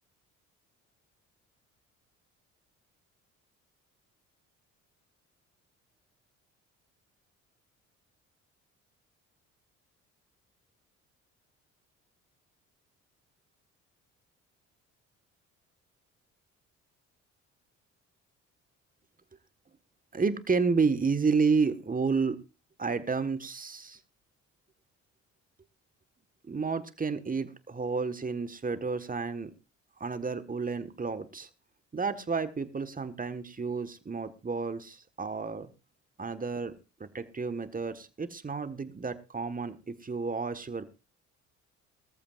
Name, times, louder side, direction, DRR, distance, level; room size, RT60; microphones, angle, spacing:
voice 1, 20.1-22.4 22.8-24.0 26.4-29.5 30.0-31.5 31.9-35.7 36.2-36.7 37.0-40.9, right 4 dB, 20° right, 12 dB, 1.5 m, -31 dB
19.0 x 14.0 x 2.5 m, 0.28 s
hypercardioid pair, 50°, 38 cm